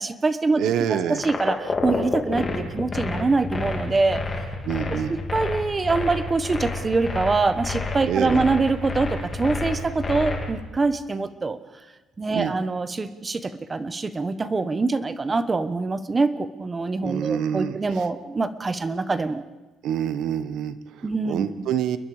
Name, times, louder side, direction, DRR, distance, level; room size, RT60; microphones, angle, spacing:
voice 1, 0.0-0.6 0.9-4.2 5.1-11.6 12.2-19.4 21.0-21.4, right 3 dB, 20° right, 12 dB, 1.1 m, -24 dB
voice 2, 0.6-1.2 4.6-5.2 8.0-8.5 12.3-12.5 17.0-18.1 19.8-22.0, right 9 dB, 70° right, 12 dB, 1.3 m, -27 dB
sound 1, 1.2-10.5, left 3 dB, 20° left, 3.4 m, -29 dB
29.0 x 21.5 x 5.0 m, 1.2 s
cardioid pair, 160°, 0 cm